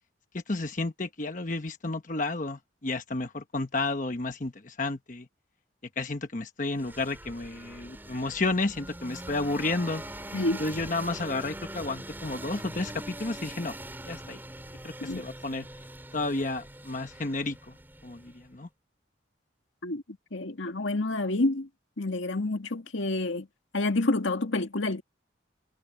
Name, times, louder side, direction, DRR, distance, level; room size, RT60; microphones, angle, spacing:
voice 1, 0.3-5.3 6.0-10.0 10.6-13.8 14.0-14.4 14.8-15.7 16.1-17.7 18.0-18.7, left 2 dB, 40° left, 1.1 m, -31 dB
sound 1, 6.8-18.5, right 1 dB, 10° right, 4.3 m, -43 dB
voice 2, 20.3-21.7 22.0-23.5 23.7-25.0, left 2 dB, 80° left, 1.9 m, -28 dB
head